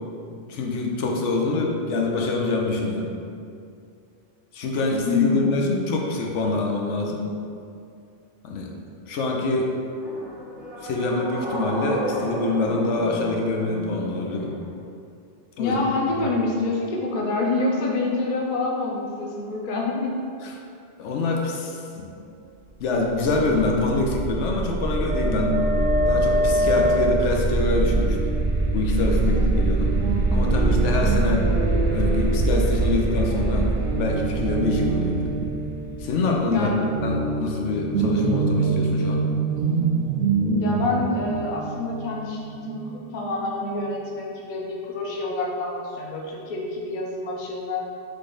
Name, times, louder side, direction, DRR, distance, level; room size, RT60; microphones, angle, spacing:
voice 1, 0.3-3.1 4.5-7.3 8.4-8.7 9.1-9.7 10.8-14.6 15.6-15.8 16.1-16.3 20.4-20.5 21.0-22.1 22.8-25.6 26.1-28.2 28.7-30.0 30.3-31.5 31.9-35.3 36.0-39.2, left 3 dB, 90° left, 1 dB, 1.0 m, -25 dB
voice 2, 5.1-5.8 15.6-20.1 36.5-36.8 40.6-47.8, left 3 dB, 50° left, -2 dB, 0.7 m, -27 dB
sound 1, 10.0-14.7, right 1 dB, ahead, 0.5 m, -32 dB
sound 2, 23.0-36.7, right 2 dB, 50° right, 0.5 m, -23 dB
Guitar, 25.3-33.0 33.3-43.7, right 4 dB, 80° right, 0.9 m, -28 dB
3.8 x 3.3 x 3.7 m, 2.5 s
omnidirectional pair, 1.2 m